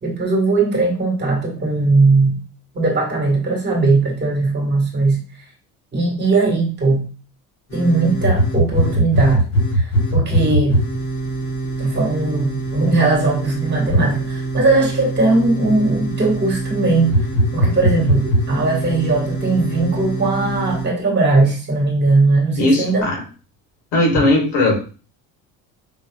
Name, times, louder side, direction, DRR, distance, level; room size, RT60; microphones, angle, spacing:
voice 1, 0.0-2.4 2.7-5.2 5.9-7.0 7.7-9.4 9.7-9.8 10.1-10.8 11.8-17.1 17.5-23.0, right 3 dB, 25° right, 1 dB, 1.7 m, -18 dB
sound 1, 7.7-20.8, right 1 dB, 35° left, 1.4 m, -22 dB
voice 2, 22.6-23.2 23.9-24.7, left 2 dB, 80° left, -1 dB, 2.1 m, -17 dB
5.1 x 2.8 x 2.4 m, 0.36 s
cardioid pair, 110°, 38 cm